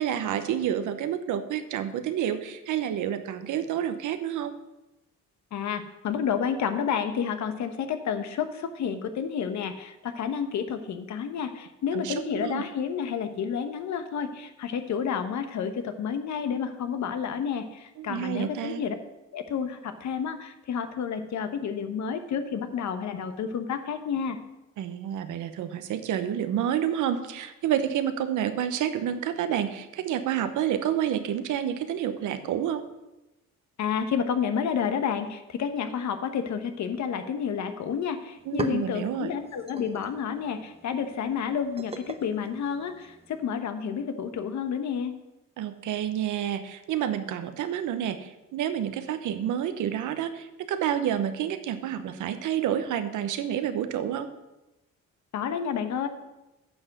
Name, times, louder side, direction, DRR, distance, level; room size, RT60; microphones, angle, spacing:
voice 1, 0.0-4.5 11.9-12.6 18.0-18.8 24.8-32.8 38.5-39.3 45.6-54.3, right 10 dB, 80° right, 10 dB, 1.0 m, -29 dB
voice 2, 5.5-18.9 19.3-24.4 33.8-45.1 55.3-56.1, left 7 dB, 65° left, 9 dB, 1.1 m, -30 dB
sound 1, 37.9-38.0 38.2-43.4, right 3 dB, 20° right, 0.9 m, -41 dB
9.6 x 6.2 x 6.6 m, 0.99 s
cardioid pair, 90°, 30 cm